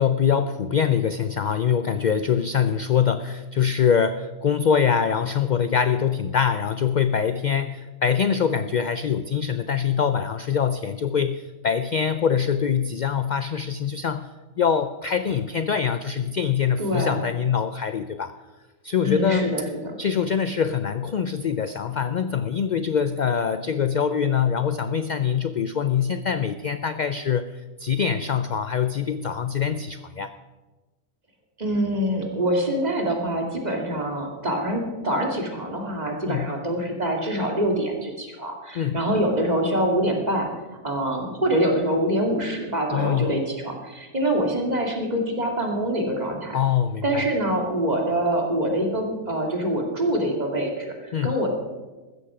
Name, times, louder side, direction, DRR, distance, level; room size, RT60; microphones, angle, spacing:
voice 1, 0.0-14.3 14.6-18.3 18.8-19.6 20.0-30.3 36.3-36.5 38.7-39.0 42.9-43.4 46.5-47.2 51.1-51.3, left 7 dB, 65° left, 11 dB, 0.4 m, -24 dB
voice 2, 16.8-17.3 19.0-20.0 31.6-40.5 40.8-46.6 47.0-51.5, right 1 dB, 30° right, 1 dB, 2.4 m, -25 dB
15.5 x 13.5 x 4.9 m, 1.2 s
omnidirectional pair, 1.4 m